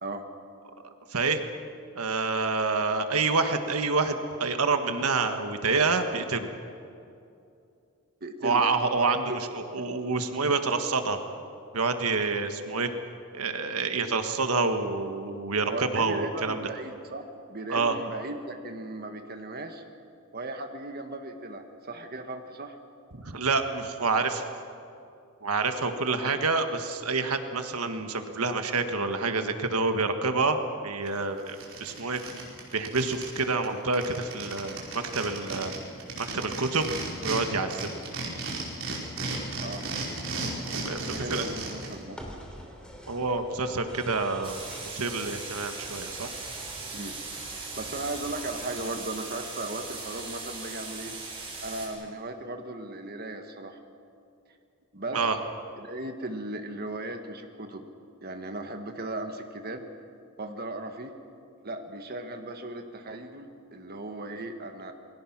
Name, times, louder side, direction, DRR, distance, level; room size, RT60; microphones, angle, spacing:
voice 1, 1.1-1.4 1.9-6.5 8.4-11.2 11.7-12.9 13.3-16.6 17.7-18.0 23.1-24.4 25.4-30.6 30.8-32.2 32.7-35.7 36.2-36.9 37.2-38.0 40.7-41.4 43.1-46.3 55.1-55.4, right 4 dB, 85° right, 7 dB, 1.6 m, -28 dB
voice 2, 8.2-8.6 9.1-9.4 15.7-17.2 17.5-19.8 20.3-22.8 26.2-26.4 39.6-39.9 41.0-42.2 46.9-47.2 47.5-51.1 51.6-53.8 54.9-55.4 55.8-57.8 58.2-59.9 60.4-61.1 61.6-64.9, right 2 dB, 45° right, 5 dB, 1.5 m, -37 dB
sound 1, 31.1-31.2 31.5-33.4 33.6-33.7 33.9-37.4 37.7-41.9, right 3 dB, 60° right, 4.9 m, -34 dB
sound 2, 40.8-48.9, equal, 5° left, 3.0 m, -48 dB
sound 3, 44.4-51.9, right 3 dB, 25° right, 4.9 m, -39 dB
28.5 x 21.5 x 6.1 m, 2.6 s
head